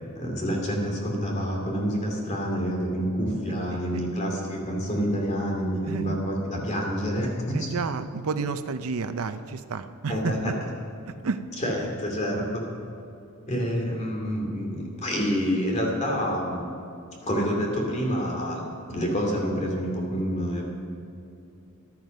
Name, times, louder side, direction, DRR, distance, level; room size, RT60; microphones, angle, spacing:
voice 1, 0.1-7.7 10.1-10.5 11.6-12.6 13.5-16.6 17.2-18.6 18.9-20.6, equal, 30° left, 0 dB, 2.7 m, -27 dB
voice 2, 3.5-4.0 5.9-6.2 7.5-10.5 11.1-11.4, right 4 dB, 70° right, 11 dB, 0.5 m, -31 dB
14.5 x 11.0 x 5.4 m, 2.6 s
head